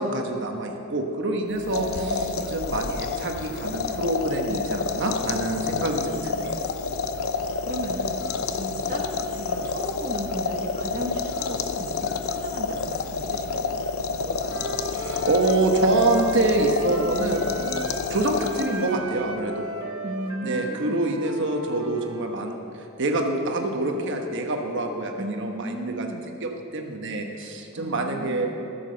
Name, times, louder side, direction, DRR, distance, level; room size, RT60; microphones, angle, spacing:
voice 1, 0.0-6.5 14.9-19.7 20.4-28.5, right 2 dB, 60° right, 3 dB, 1.2 m, -26 dB
sound 1, 1.6-19.0, left 4 dB, 85° left, 0.7 m, -29 dB
voice 2, 1.9-2.5 7.6-14.7 20.0-21.1 25.2-26.3 27.7-28.5, right 1 dB, 40° right, 0 dB, 1.0 m, -35 dB
Wind instrument woodwind instrument, 14.5-18.1 18.4-22.3, right 2 dB, 85° right, 1.0 m, -37 dB
14.5 x 7.1 x 6.8 m, 2.9 s
head